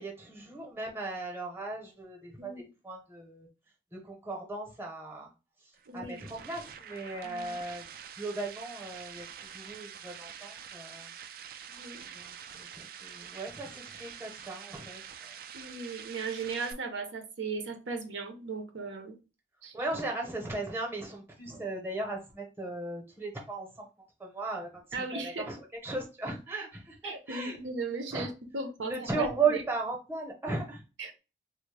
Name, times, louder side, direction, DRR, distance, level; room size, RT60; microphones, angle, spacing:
voice 1, 0.0-3.5 3.9-5.3 5.6-11.1 12.1-15.3 19.7-23.9 24.2-27.6 28.1-28.3 28.8-30.8, right 3 dB, 10° right, 0.8 m, -37 dB
voice 2, 2.4-2.7 5.9-6.2 7.2-7.6 11.8-12.0 15.5-19.2 19.6-19.7 24.9-25.5 27.0-29.6 31.0-31.2, right 4 dB, 85° right, 0.7 m, -37 dB
sound 1, 5.7-16.7, right 8 dB, 50° right, 0.3 m, -46 dB
3.5 x 2.1 x 3.2 m
head